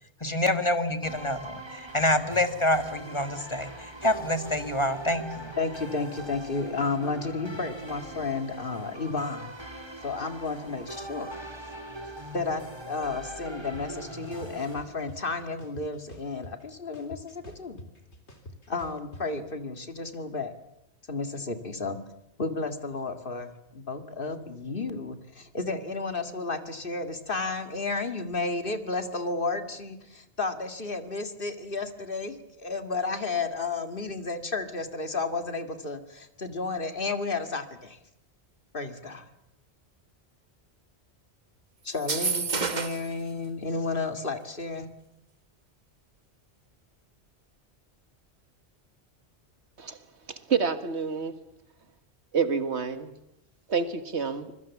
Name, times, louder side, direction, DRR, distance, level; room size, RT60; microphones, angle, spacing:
voice 1, 0.2-5.5, left 1 dB, 25° left, 9 dB, 1.9 m, -27 dB
sound 1, 1.0-14.7, right 1 dB, 25° right, 3.0 m, -41 dB
voice 2, 5.6-9.5 10.0-11.3 12.3-17.8 18.7-20.5 21.1-22.0 22.4-38.0 38.7-39.3 41.8-44.9, left 3 dB, 55° left, 8 dB, 2.2 m, -32 dB
sound 2, 13.7-13.8 14.2-15.2 15.6-16.7 16.9-19.2, left 1 dB, 85° left, 3.8 m, -45 dB
sound 3, 41.9-43.1, right 5 dB, 40° right, 1.4 m, -29 dB
voice 3, 50.5-51.3 52.3-53.1 53.7-54.5, right 6 dB, 85° right, 10 dB, 2.0 m, -27 dB
26.0 x 21.5 x 7.2 m, 0.82 s
omnidirectional pair, 1.1 m